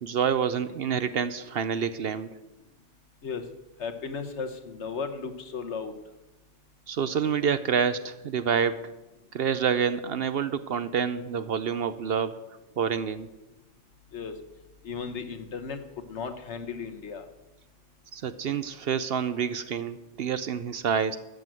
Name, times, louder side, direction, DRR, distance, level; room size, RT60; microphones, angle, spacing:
voice 1, 0.0-2.3 6.9-8.9 9.3-12.4 12.8-13.3 18.1-21.2, right 7 dB, 60° right, 13 dB, 0.8 m, -27 dB
voice 2, 3.8-5.9 14.1-14.3 14.8-17.2, left 5 dB, 65° left, 8 dB, 1.4 m, -35 dB
13.0 x 7.9 x 7.6 m, 1.0 s
omnidirectional pair, 1.3 m